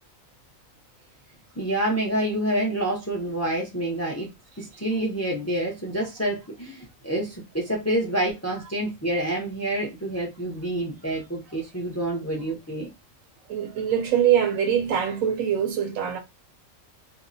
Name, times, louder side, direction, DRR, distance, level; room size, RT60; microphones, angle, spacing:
voice 1, 1.6-4.3 4.6-12.9, right 1 dB, 25° left, 0.3 m, -27 dB
voice 2, 13.5-16.2, right 9 dB, 85° right, 1.0 m, -23 dB
2.6 x 2.0 x 2.5 m
omnidirectional pair, 1.4 m